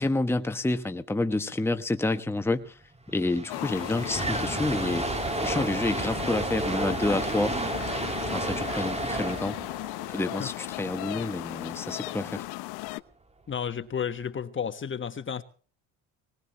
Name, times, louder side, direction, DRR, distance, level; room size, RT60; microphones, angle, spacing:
voice 1, 0.0-2.7 3.1-5.1 5.4-7.6 8.3-9.6 10.1-12.5, left 2 dB, 5° left, 1.3 m, -28 dB
sound 1, 2.7-2.8 3.0-11.2, right 3 dB, 15° right, 2.0 m, -32 dB
sound 2, 3.5-13.0, left 22 dB, 85° left, 0.9 m, -37 dB
voice 2, 13.5-15.4, left 7 dB, 30° left, 1.4 m, -32 dB
20.0 x 19.5 x 3.1 m
supercardioid pair, 95°, 37 cm